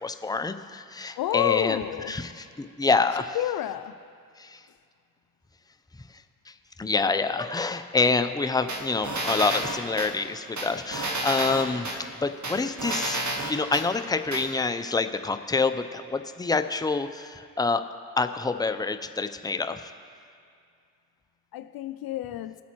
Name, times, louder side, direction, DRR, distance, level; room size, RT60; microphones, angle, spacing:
voice 1, 0.0-3.4 4.4-4.6 6.5-6.6 6.8-17.8 18.2-19.9, left 4 dB, 10° left, 0.6 m, -27 dB
voice 2, 1.2-2.1 3.3-3.9 21.5-22.6, left 12 dB, 60° left, 0.5 m, -29 dB
sound 1, 8.7-10.1 10.6-12.0 12.4-13.9 14.3-14.4, right 2 dB, 40° right, 1.9 m, -30 dB
20.0 x 8.2 x 3.1 m
hypercardioid pair, 45°, 43 cm